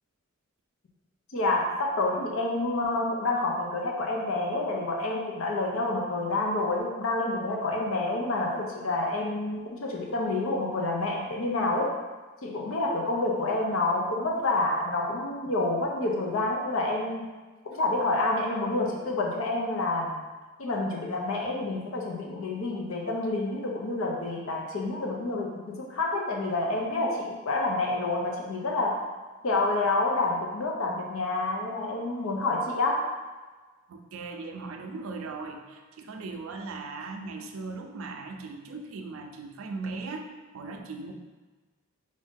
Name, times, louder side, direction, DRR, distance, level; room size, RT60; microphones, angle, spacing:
voice 1, 1.3-11.9 12.4-17.3 17.8-20.2 20.6-29.0 29.4-33.0, left 2 dB, 70° left, -1 dB, 0.6 m, -28 dB
voice 2, 33.9-41.1, right 3 dB, 75° right, 4 dB, 0.4 m, -38 dB
3.7 x 2.6 x 3.5 m, 1.3 s
head